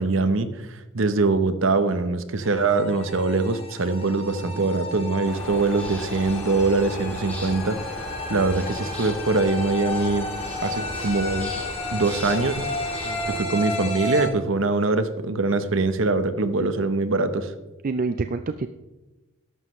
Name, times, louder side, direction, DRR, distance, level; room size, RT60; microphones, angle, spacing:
voice 1, 0.0-10.3 10.6-11.5 11.9-12.7 13.3-17.5, right 3 dB, 65° right, 11 dB, 0.8 m, -23 dB
sound 1, 2.4-14.3, left 2 dB, 30° left, 1.5 m, -33 dB
voice 2, 4.3-4.7 13.0-13.4 17.8-18.7, right 4 dB, 40° right, 9 dB, 0.4 m, -29 dB
sound 2, 5.2-13.4, equal, 10° left, 2.5 m, -36 dB
13.5 x 11.5 x 3.1 m, 1.1 s
head